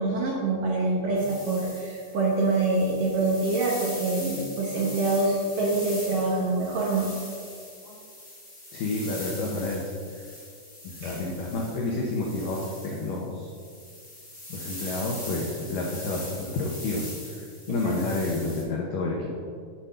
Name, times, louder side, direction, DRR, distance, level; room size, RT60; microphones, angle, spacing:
voice 1, 0.0-7.1 11.0-11.2 17.8-18.0, right 2 dB, 75° right, -3 dB, 2.1 m, -25 dB
sound 1, 1.2-18.6, left 1 dB, 35° left, 0.8 m, -41 dB
voice 2, 8.7-10.2 10.8-13.5 14.5-17.1 17.3-19.4, left 2 dB, 85° left, -1 dB, 1.9 m, -30 dB
7.7 x 4.4 x 6.6 m, 2.2 s
omnidirectional pair, 4.9 m